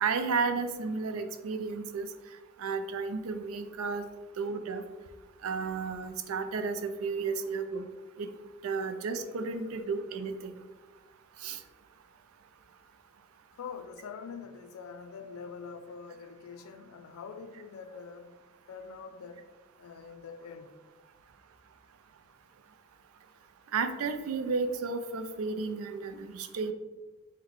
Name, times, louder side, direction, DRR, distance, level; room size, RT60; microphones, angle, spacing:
voice 1, 0.0-2.1 2.6-4.0 4.4-4.8 5.4-7.9 8.2-8.3 8.6-10.5 11.4-11.6 23.7-26.7, right 4 dB, 75° right, 0.4 m, -32 dB
voice 2, 13.5-18.4 18.7-19.5 19.8-20.8, left 5 dB, 75° left, 0.4 m, -44 dB
3.8 x 2.1 x 4.5 m
head